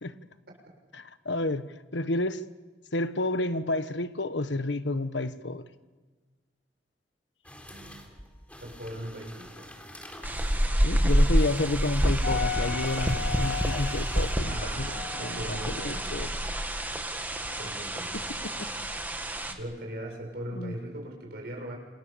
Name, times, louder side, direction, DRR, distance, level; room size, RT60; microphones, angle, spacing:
voice 1, 0.1-0.6 7.7-8.0 8.6-9.7 14.4-16.6 17.5-18.3 19.5-21.8, right 1 dB, 60° right, 7.2 m, -40 dB
voice 2, 1.0-2.4 2.9-5.6 10.8-14.9 15.2-16.3 20.6-20.7, left 2 dB, 85° left, 1.3 m, -30 dB
sound 1, 7.4-14.3, equal, 10° left, 3.8 m, -47 dB
sound 2, 10.2-19.5, equal, 10° right, 2.0 m, -28 dB
sound 3, 12.2-17.8 18.2-19.0, left 7 dB, 55° left, 2.5 m, -38 dB
28.0 x 26.5 x 7.0 m
head